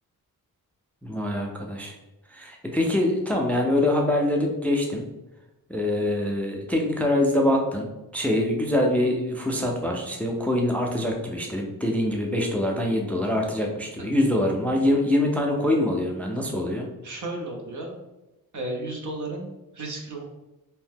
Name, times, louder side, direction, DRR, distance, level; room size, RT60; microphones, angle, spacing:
voice 1, 1.0-1.9 2.3-5.0 5.7-16.8, left 1 dB, 5° left, 1 dB, 0.3 m, -24 dB
voice 2, 14.0-14.3 17.0-18.0 18.5-20.2, right 2 dB, 55° right, 1 dB, 0.7 m, -34 dB
2.7 x 2.0 x 3.4 m, 0.98 s
cardioid pair, 80°, 36 cm